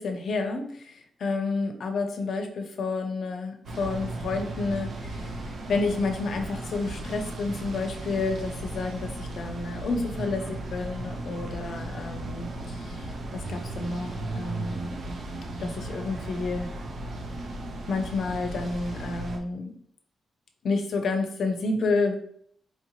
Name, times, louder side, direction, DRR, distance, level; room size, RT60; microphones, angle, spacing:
voice 1, 0.0-5.4 5.7-15.0 15.6-16.7 17.9-19.8 20.6-22.2, left 3 dB, 55° left, 5 dB, 0.6 m, -30 dB
sound 1, 3.6-19.4, right 1 dB, 55° right, 0.5 m, -36 dB
4.3 x 2.7 x 2.9 m, 0.66 s
wide cardioid pair, 180°, 0 cm